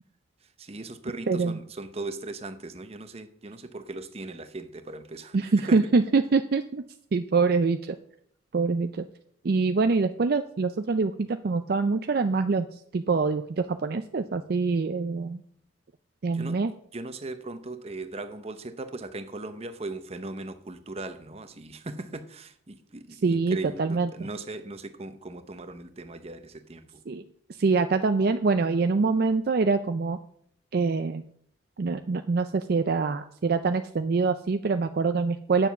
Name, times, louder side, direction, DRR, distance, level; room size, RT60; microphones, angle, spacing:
voice 1, 0.6-5.8 16.3-16.6 16.9-27.0, right 2 dB, 30° right, 0.8 m, -38 dB
voice 2, 1.3-1.6 5.3-6.8 7.1-8.0 8.5-9.0 9.4-12.7 12.9-15.4 16.2-16.7 23.2-24.3 27.1-27.2 27.6-30.2 30.7-31.2 31.8-35.7, right 4 dB, 55° right, 0.4 m, -25 dB
8.8 x 7.0 x 6.0 m
head